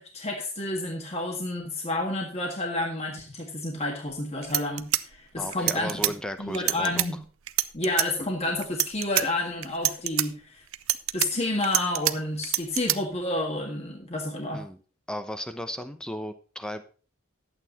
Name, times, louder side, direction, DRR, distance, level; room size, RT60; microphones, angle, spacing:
voice 1, 0.0-7.2 7.7-10.6 11.1-14.6, left 2 dB, 30° left, 1 dB, 1.6 m, -30 dB
sound 1, 4.1-4.2 4.4-6.1 6.5-7.1 7.5-8.1 8.6-9.2 9.6-10.3 10.7-12.1 12.4-13.0, right 15 dB, 75° right, 0.6 m, -26 dB
voice 2, 5.4-7.1 14.5-14.8 15.1-16.8, equal, 5° left, 9 dB, 0.8 m, -35 dB
11.5 x 8.6 x 4.2 m, 0.38 s
head